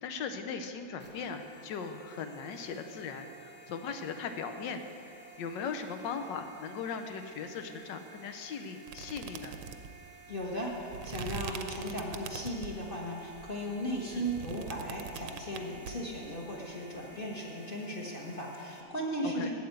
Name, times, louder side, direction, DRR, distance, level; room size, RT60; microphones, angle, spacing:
voice 1, 0.0-9.6 14.1-14.3 19.2-19.5, left 5 dB, 85° left, 7 dB, 1.4 m, -39 dB
sound 1, 1.0-18.8, right 3 dB, 10° left, 0.8 m, -53 dB
sound 2, 8.9-12.9 13.3-15.9, right 7 dB, 85° right, 1.4 m, -42 dB
voice 2, 10.3-19.5, equal, 30° left, -3 dB, 1.4 m, -37 dB
8.4 x 8.0 x 7.9 m, 2.5 s
omnidirectional pair, 1.9 m